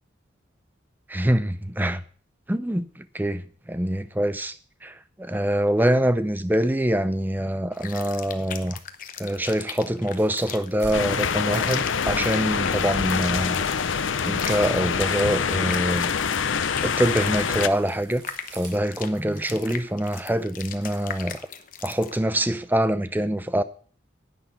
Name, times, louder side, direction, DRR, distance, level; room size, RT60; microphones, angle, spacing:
voice 1, 1.1-2.0 2.5-4.6 4.8-8.8 9.2-13.6 14.2-16.1 16.8-18.2 18.5-21.4 21.8-23.6, right 1 dB, 10° right, 0.5 m, -25 dB
sound 1, 7.7-22.2, left 8 dB, 45° left, 0.9 m, -39 dB
sound 2, 10.0-20.2, right 2 dB, 65° right, 3.6 m, -49 dB
sound 3, 10.9-17.7, left 6 dB, 80° left, 0.7 m, -25 dB
10.0 x 9.3 x 5.6 m
head